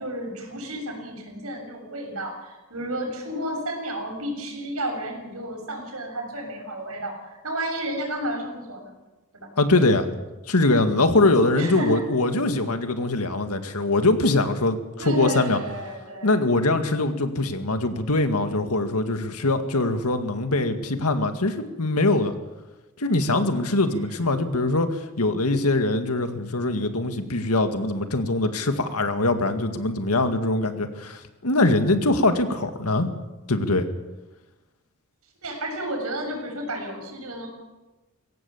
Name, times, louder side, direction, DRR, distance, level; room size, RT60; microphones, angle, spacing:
voice 1, 0.0-9.0 9.3-9.5 11.5-12.0 15.0-16.5 35.4-37.5, right 1 dB, 75° right, 2 dB, 7.2 m, -32 dB
voice 2, 9.6-10.1 10.5-15.6 16.2-22.3 23.0-33.1 33.5-33.9, left 2 dB, 85° left, 7 dB, 2.0 m, -22 dB
22.5 x 17.5 x 7.3 m, 1.1 s
head